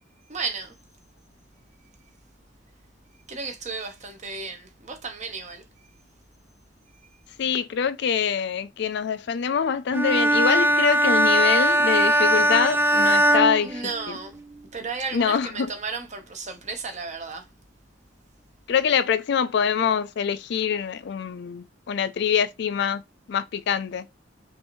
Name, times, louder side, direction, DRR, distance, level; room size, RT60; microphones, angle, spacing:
voice 1, 0.3-0.7 3.3-5.6 13.6-14.3 14.7-17.4, right 4 dB, 40° right, 0.9 m, -33 dB
voice 2, 7.4-13.9 15.1-15.7 18.7-23.0 23.3-24.0, left 7 dB, 65° left, 0.4 m, -24 dB
Bowed string instrument, 9.9-14.4, right 1 dB, 10° right, 0.3 m, -20 dB
5.4 x 2.6 x 3.0 m
head